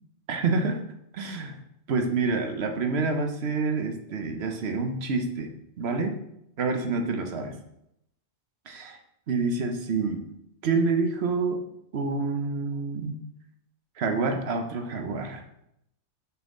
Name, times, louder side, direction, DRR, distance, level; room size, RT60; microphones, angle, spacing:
voice 1, 0.3-0.8 1.1-1.6 1.9-5.5 5.8-6.1 6.6-7.5 8.7-9.0 9.3-10.2 10.6-11.6 11.9-13.2 14.0-15.4, right 4 dB, 65° right, 5 dB, 1.1 m, -27 dB
5.9 x 5.7 x 3.7 m, 0.78 s
omnidirectional pair, 1.2 m